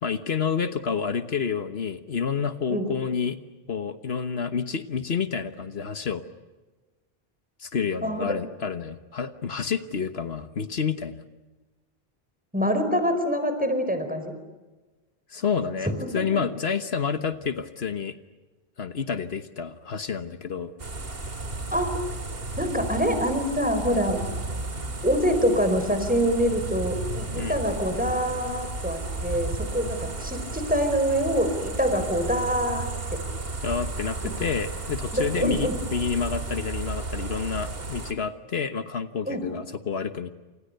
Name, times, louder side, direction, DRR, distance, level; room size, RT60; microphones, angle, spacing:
voice 1, 0.0-3.4 3.7-6.2 7.6-11.2 15.3-18.1 18.8-20.7 27.4-27.6 33.6-40.3, left 6 dB, 75° left, 10 dB, 1.5 m, -29 dB
voice 2, 8.0-8.4 12.5-14.3 16.0-16.2 21.7-21.9 22.6-24.2 25.0-33.2 35.1-35.7 39.2-39.4, equal, 10° right, 7 dB, 4.8 m, -25 dB
sound 1, 20.8-38.1, right 3 dB, 65° right, 2.4 m, -33 dB
29.5 x 27.5 x 6.8 m, 1.2 s
omnidirectional pair, 1.1 m